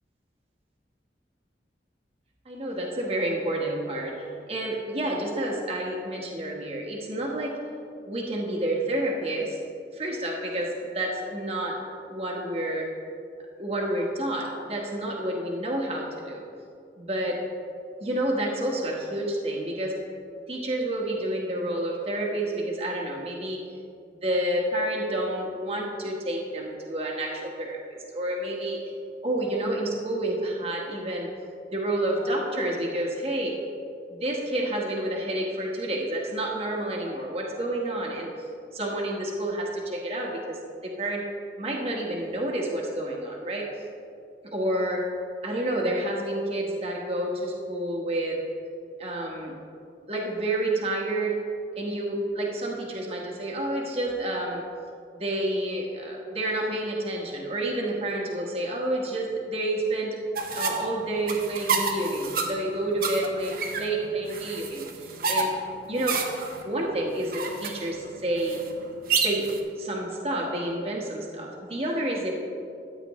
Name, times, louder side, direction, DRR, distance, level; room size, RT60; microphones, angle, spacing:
voice 1, 2.4-4.2 4.5-7.5 8.0-9.6 9.9-11.8 12.1-12.9 13.6-16.4 17.0-17.4 18.0-20.0 20.5-23.6 24.2-27.8 28.1-28.8 29.2-31.3 31.7-33.5 34.1-38.3 38.7-41.3 41.6-43.7 44.4-45.0 45.4-48.4 49.0-49.5 50.1-51.4 51.8-54.6 55.1-60.2 60.5-65.5 65.9-66.2 66.6-68.6 69.2-69.5 69.8-72.4, right 1 dB, 35° right, -1 dB, 1.3 m, -29 dB
sound 1, 60.3-69.6, right 4 dB, 55° right, 0.9 m, -30 dB
13.0 x 9.1 x 3.1 m, 2.5 s
head